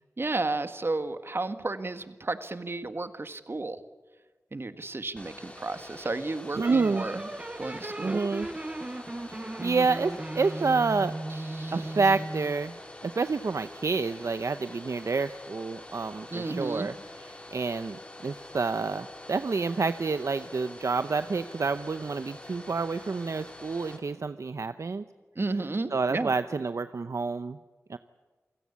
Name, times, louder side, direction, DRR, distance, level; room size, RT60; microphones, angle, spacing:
voice 1, 0.2-3.8 4.5-7.2 7.6-8.2 11.5-11.9 16.3-16.9 25.4-26.3, right 2 dB, 45° right, 10 dB, 1.8 m, -32 dB
Domestic sounds home sounds, 5.1-24.0, left 1 dB, 20° left, 4.9 m, -46 dB
voice 2, 6.5-7.1 8.0-8.5 9.3-11.2 11.7-12.7 13.0-16.9 17.5-25.0 25.9-27.6 27.9-28.0, right 4 dB, 70° right, 11 dB, 0.8 m, -28 dB
sound 1, 6.6-12.7, right 2 dB, 25° right, 0.8 m, -37 dB
28.5 x 17.0 x 8.4 m, 1.3 s
wide cardioid pair, 60°, 5 cm